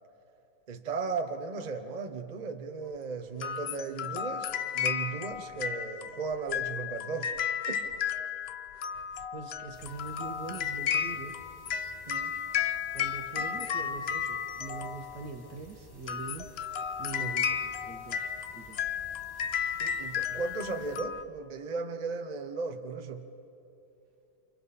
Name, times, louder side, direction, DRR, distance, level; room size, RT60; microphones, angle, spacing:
voice 1, 0.7-4.5 4.7-7.3 7.7-7.8 12.1-12.4 13.4-13.5 17.2-17.3 19.8-23.3, right 4 dB, 30° right, 0.9 m, -36 dB
sound 1, 3.4-15.3 16.0-21.2, left 8 dB, 60° left, 0.6 m, -33 dB
voice 2, 9.3-11.3 12.9-16.5 17.0-18.8, right 4 dB, 70° right, 2.0 m, -43 dB
sound 2, 9.7-21.0, left 1 dB, 20° left, 0.8 m, -55 dB
29.5 x 28.5 x 4.2 m
omnidirectional pair, 1.8 m